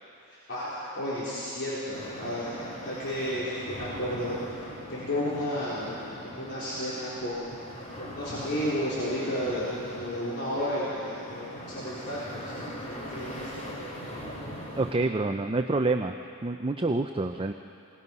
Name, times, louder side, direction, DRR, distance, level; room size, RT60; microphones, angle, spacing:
voice 1, 0.3-4.6 4.9-6.0 6.2-7.6 8.0-14.3, equal, 50° left, -9 dB, 4.3 m, -33 dB
sound 1, 1.9-14.9, equal, 30° left, 3.1 m, -41 dB
voice 2, 14.8-16.2 16.4-17.5, right 2 dB, 25° right, 6 dB, 0.5 m, -27 dB
27.5 x 19.5 x 5.5 m, 2.6 s
head